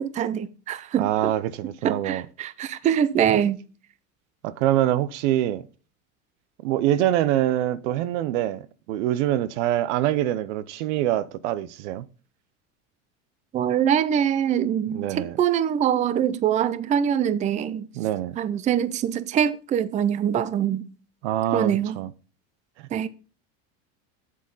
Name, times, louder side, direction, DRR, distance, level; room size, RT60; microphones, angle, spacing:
voice 1, 0.0-1.3 1.8-3.6 13.5-17.9 18.4-20.8 21.5-22.0 22.9-23.1, right 9 dB, 20° right, 0.4 m, -24 dB
voice 2, 1.0-2.3 3.3-3.4 4.4-5.7 6.6-12.1 14.9-15.4 18.0-18.4 21.2-22.1, right 13 dB, 85° right, 0.8 m, -25 dB
8.2 x 7.6 x 4.0 m
supercardioid pair, 145°, 35 cm